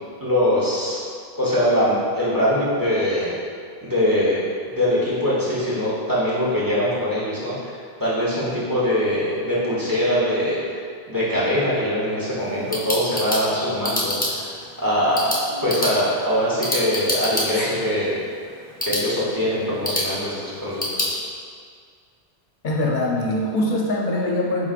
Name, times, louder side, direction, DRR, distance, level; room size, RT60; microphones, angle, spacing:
voice 1, 0.2-1.0 1.4-3.4 3.8-4.4 4.7-10.8 11.1-14.2 14.8-15.3 15.6-18.2 18.8-21.2, left 1 dB, 20° right, -8 dB, 0.8 m, -22 dB
sound 1, 12.4-21.1, left 1 dB, 10° left, 0.5 m, -28 dB
voice 2, 22.6-24.7, left 1 dB, 55° left, -2 dB, 0.8 m, -23 dB
4.9 x 3.8 x 2.4 m, 2.1 s
omnidirectional pair, 1.1 m